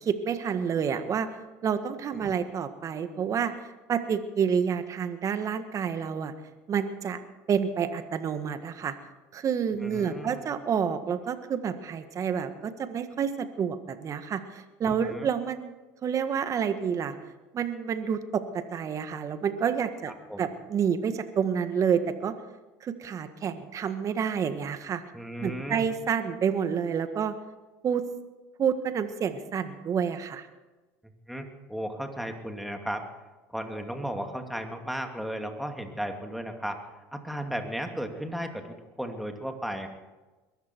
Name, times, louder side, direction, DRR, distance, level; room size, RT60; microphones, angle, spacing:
voice 1, 0.0-1.3 1.6-3.5 3.9-6.3 6.7-7.2 7.5-8.9 9.3-15.7 16.0-17.1 17.5-20.1 20.4-22.3 22.8-25.0 25.4-27.3 27.8-28.0 28.6-30.5, right 7 dB, 40° right, 10 dB, 1.6 m, -29 dB
voice 2, 9.8-10.5 14.9-15.3 20.3-20.5 25.1-25.9 31.0-33.0 33.5-36.8 37.1-39.9, equal, ahead, 4 dB, 2.5 m, -35 dB
22.0 x 14.0 x 4.6 m, 1.2 s
hypercardioid pair, 85°, 8 cm